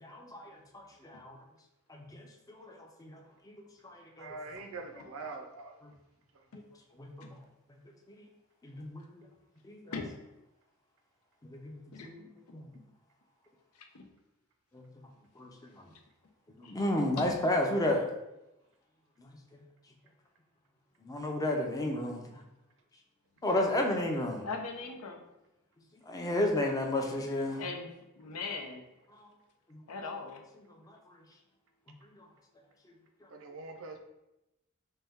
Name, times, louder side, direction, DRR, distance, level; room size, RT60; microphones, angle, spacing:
voice 1, 0.0-1.4 1.9-2.1 2.5-3.2 3.5-3.6 3.8-4.3 5.8-5.9 7.0-7.3 8.1-8.2 8.6-9.3 9.6-9.9 11.4-12.7 14.7-14.8 15.4-15.8 16.6-18.1 19.5-19.6 21.1-22.2 23.4-24.4 26.1-27.6 29.2-29.3 29.7-29.8, left 1 dB, 15° left, 1 dB, 0.5 m, -32 dB
voice 2, 4.2-5.8 33.3-34.0, right 3 dB, 65° right, 4 dB, 0.5 m, -43 dB
voice 3, 24.4-25.2 27.6-27.9 28.2-28.8 29.9-30.4, left 4 dB, 80° left, 3 dB, 0.6 m, -39 dB
4.1 x 2.2 x 3.5 m, 0.92 s
head